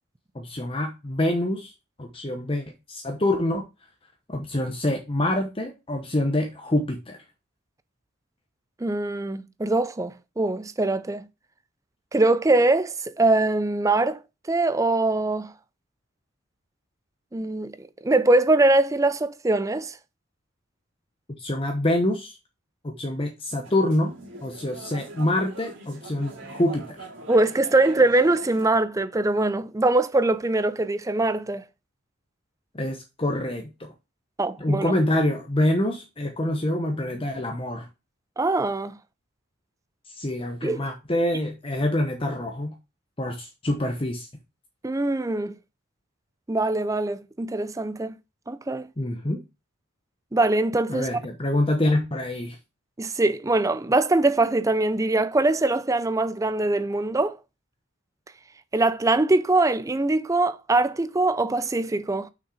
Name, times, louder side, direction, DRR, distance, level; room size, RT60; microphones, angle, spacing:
voice 1, 0.3-1.7 2.0-3.6 4.3-7.2 21.4-22.4 22.8-24.1 24.4-27.1 32.7-33.9 34.6-37.9 40.1-42.7 43.2-44.3 49.0-49.4 50.9-52.6, left 1 dB, 25° left, 0.9 m, -26 dB
voice 2, 8.8-11.3 12.1-14.2 14.5-15.5 17.3-20.0 27.3-31.6 34.4-34.9 38.4-39.0 40.6-40.8 44.8-45.5 46.5-48.2 48.5-48.9 50.3-51.1 53.0-57.4 58.7-62.3, right 2 dB, 15° right, 0.4 m, -22 dB
sound 1, 23.6-28.7, right 2 dB, 55° right, 2.6 m, -41 dB
6.3 x 5.8 x 4.8 m
head